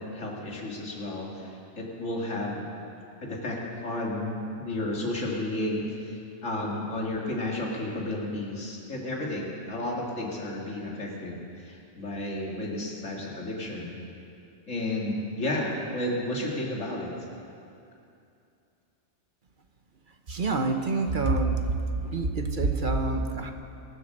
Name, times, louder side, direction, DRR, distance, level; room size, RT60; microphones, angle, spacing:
voice 1, 0.0-2.7 3.2-14.0 14.7-17.1, left 1 dB, 90° left, -2 dB, 2.5 m, -32 dB
voice 2, 20.3-21.7 22.0-23.5, right 3 dB, 45° right, 5 dB, 1.1 m, -26 dB
22.0 x 7.6 x 6.6 m, 2.6 s
omnidirectional pair, 1.3 m